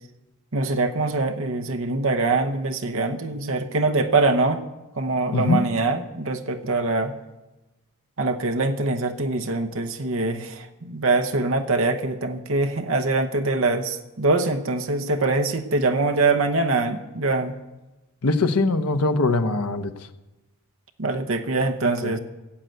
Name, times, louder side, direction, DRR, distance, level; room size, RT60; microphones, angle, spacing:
voice 1, 0.5-4.6 5.0-7.1 8.2-17.6 21.0-22.2, right 3 dB, 60° right, 6 dB, 1.0 m, -23 dB
voice 2, 18.2-19.9 22.0-22.2, left 3 dB, 90° left, 8 dB, 1.0 m, -22 dB
15.5 x 8.0 x 7.7 m, 1.1 s
head